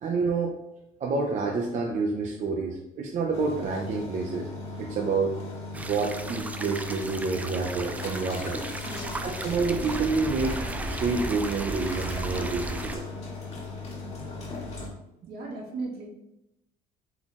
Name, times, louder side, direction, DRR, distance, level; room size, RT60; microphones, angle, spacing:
voice 1, 0.0-0.5 1.0-4.5 4.8-5.4 5.8-8.6 9.0-13.0, right 4 dB, 45° right, 0 dB, 0.6 m, -28 dB
sound 1, 3.3-14.9, left 3 dB, 40° left, 1.4 m, -38 dB
sound 2, 5.7-13.0, right 2 dB, 10° right, 0.3 m, -35 dB
voice 2, 8.8-9.2 15.3-16.1, right 3 dB, 70° right, -2 dB, 1.5 m, -36 dB
3.9 x 2.9 x 4.1 m, 0.85 s
cardioid pair, 110°, 17 cm